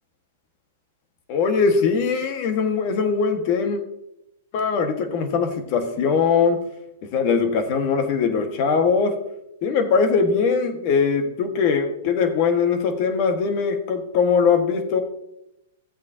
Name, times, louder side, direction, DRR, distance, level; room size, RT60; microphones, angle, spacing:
voice 1, 1.3-3.8 4.5-6.6 7.0-9.1 9.6-15.0, left 5 dB, 45° left, 6 dB, 1.6 m, -21 dB
14.5 x 8.2 x 2.8 m, 0.86 s
hypercardioid pair, 125°, 0 cm